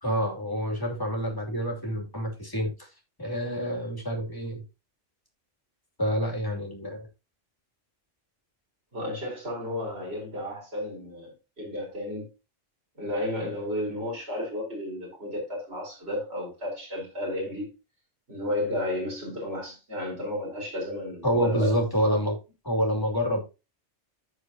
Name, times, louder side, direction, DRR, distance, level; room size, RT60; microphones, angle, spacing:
voice 1, 0.0-2.9 3.2-4.6 6.0-7.1 21.2-22.4 22.6-23.4, equal, 15° left, 2.7 m, -27 dB
voice 2, 8.9-12.3 13.0-17.7 18.3-21.7, left 1 dB, 55° right, 5.0 m, -33 dB
14.5 x 4.8 x 2.8 m
omnidirectional pair, 1.3 m